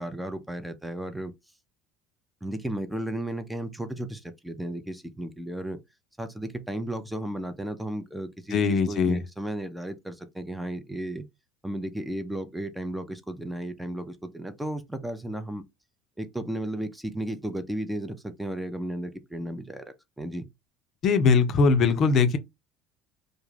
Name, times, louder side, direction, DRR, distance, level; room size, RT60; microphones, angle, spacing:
voice 1, 0.0-1.3 2.4-5.8 6.2-11.3 11.6-15.6 16.2-19.8 20.2-20.5, right 1 dB, 5° right, 0.5 m, -34 dB
voice 2, 8.5-9.2 21.0-22.4, left 5 dB, 50° left, 0.4 m, -21 dB
2.2 x 2.0 x 3.2 m
supercardioid pair, 85°, 0 cm